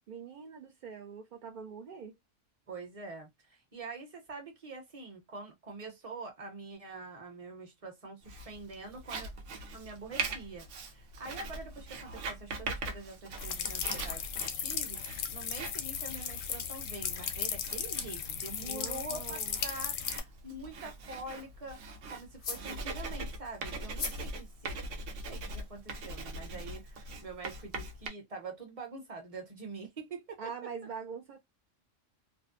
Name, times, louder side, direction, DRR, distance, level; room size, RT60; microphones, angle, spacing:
voice 1, 0.1-2.2 18.6-19.6 30.4-31.4, right 6 dB, 65° right, 0.4 m, -44 dB
voice 2, 2.7-9.3 9.7-24.9 25.2-30.5, right 3 dB, 35° right, 0.8 m, -45 dB
Writing, 8.3-28.1, right 3 dB, 80° right, 1.0 m, -42 dB
sound 1, 13.4-20.2, left 8 dB, 80° left, 0.9 m, -36 dB
sound 2, 17.6-25.5, left 5 dB, 55° left, 0.5 m, -48 dB
2.6 x 2.1 x 2.4 m
omnidirectional pair, 1.3 m